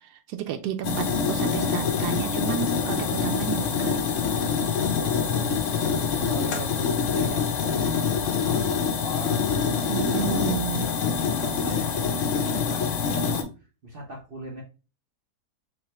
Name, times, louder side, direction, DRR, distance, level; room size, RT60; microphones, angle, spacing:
voice 1, 0.3-4.0 9.9-10.9, right 9 dB, 85° right, 8 dB, 1.2 m, -31 dB
sound 1, 0.8-13.4, left 6 dB, 60° left, 0.9 m, -25 dB
voice 2, 5.0-5.7 6.1-7.5 8.2-10.6 10.8-13.3 13.8-14.6, equal, 45° right, -3 dB, 0.8 m, -39 dB
3.6 x 3.2 x 2.9 m, 0.32 s
omnidirectional pair, 1.7 m